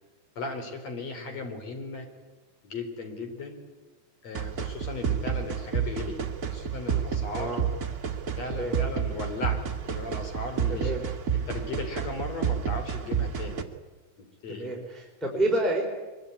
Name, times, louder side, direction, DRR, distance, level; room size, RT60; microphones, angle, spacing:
voice 1, 0.4-2.1 2.6-3.6 4.2-6.2 6.5-7.6 8.4-10.9 11.5-13.6 14.2-14.7, left 3 dB, 60° left, 5 dB, 5.1 m, -36 dB
voice 2, 1.1-1.5 7.3-7.7 8.6-8.8 10.7-11.0 14.5-15.9, right 1 dB, ahead, -2 dB, 4.4 m, -29 dB
sound 1, 4.3-13.6, right 7 dB, 35° right, 1.7 m, -30 dB
24.0 x 23.5 x 9.7 m, 1.2 s
omnidirectional pair, 3.4 m